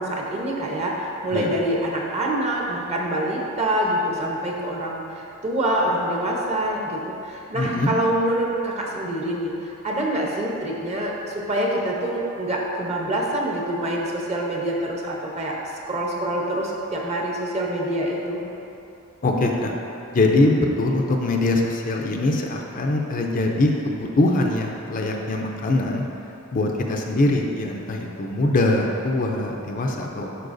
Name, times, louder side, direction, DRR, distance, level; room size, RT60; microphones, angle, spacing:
voice 1, 0.0-9.5 9.8-15.6 15.9-18.5, right 1 dB, 30° right, -2 dB, 0.8 m, -25 dB
voice 2, 7.5-7.9 19.2-19.7 20.1-26.0 26.5-30.5, left 2 dB, 40° left, 1 dB, 0.5 m, -22 dB
11.0 x 4.4 x 2.6 m, 2.8 s
head